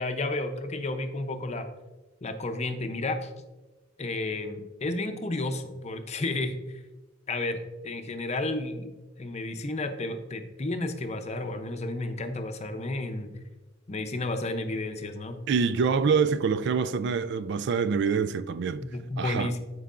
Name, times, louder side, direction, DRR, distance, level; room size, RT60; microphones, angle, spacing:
voice 1, 0.0-1.7 2.2-3.3 4.0-6.8 7.3-8.9 9.2-13.3 13.9-15.4 18.8-19.6, left 2 dB, 35° left, 0.6 m, -32 dB
voice 2, 15.5-18.8 19.2-19.5, right 5 dB, 60° right, 0.3 m, -25 dB
13.5 x 4.6 x 2.5 m
head